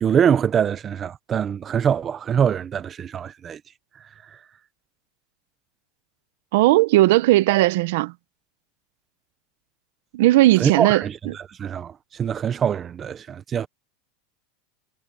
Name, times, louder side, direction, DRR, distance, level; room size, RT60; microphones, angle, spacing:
voice 1, 0.0-3.6 10.6-13.7, right 8 dB, 20° right, 0.7 m, -24 dB
voice 2, 6.5-8.1 10.1-11.0, right 17 dB, 65° right, 0.8 m, -17 dB
supercardioid pair, 160°, 0 cm